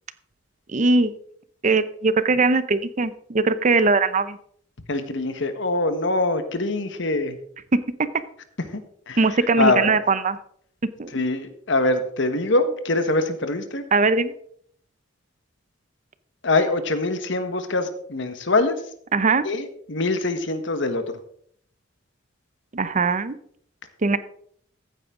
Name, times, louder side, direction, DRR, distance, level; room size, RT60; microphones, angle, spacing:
voice 1, 0.7-1.1 1.6-4.4 7.7-8.1 9.2-10.4 11.0-11.1 13.9-14.3 19.1-19.4 22.7-23.4 24.0-24.2, right 3 dB, 40° right, 14 dB, 0.7 m, -20 dB
voice 2, 4.9-7.4 8.7-8.8 9.1-9.2 9.6-9.9 11.1-13.8 16.4-18.8 19.4-21.0, left 2 dB, 70° left, 9 dB, 1.3 m, -23 dB
15.0 x 9.1 x 3.7 m, 0.64 s
head